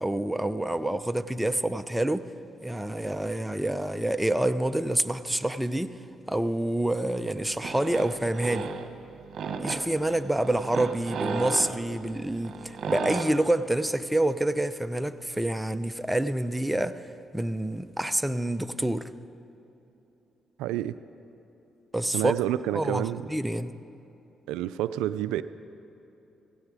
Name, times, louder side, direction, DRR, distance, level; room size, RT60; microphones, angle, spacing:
voice 1, 0.0-2.3 2.6-5.9 6.3-8.7 9.6-17.0 17.3-19.1 21.9-22.3 22.7-23.7, right 1 dB, 5° right, 11 dB, 0.7 m, -27 dB
sound 1, 7.3-13.2, right 5 dB, 60° right, 1.2 m, -35 dB
voice 2, 20.6-20.9 22.1-23.2 24.5-25.4, right 13 dB, 90° right, 14 dB, 0.3 m, -28 dB
16.5 x 16.5 x 4.9 m, 3.0 s
supercardioid pair, 60°, 0 cm